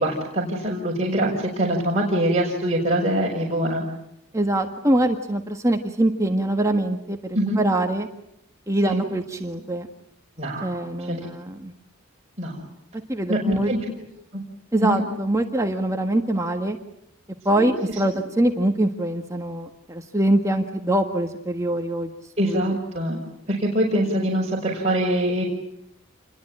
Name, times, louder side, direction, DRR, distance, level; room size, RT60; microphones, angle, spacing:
voice 1, 0.0-3.8 7.3-7.6 8.9-9.0 10.4-11.2 12.4-12.6 13.3-14.0 14.3-14.4 14.8-15.0 17.5-18.0 22.4-23.2 23.5-25.4, right 1 dB, 35° right, -3 dB, 5.6 m, -24 dB
voice 2, 4.3-7.2 7.6-8.1 8.7-9.9 10.6-11.7 13.1-13.7 14.7-16.8 17.4-22.1 22.4-22.7, right 1 dB, 15° right, 3 dB, 1.6 m, -23 dB
28.5 x 22.0 x 8.8 m, 0.77 s
head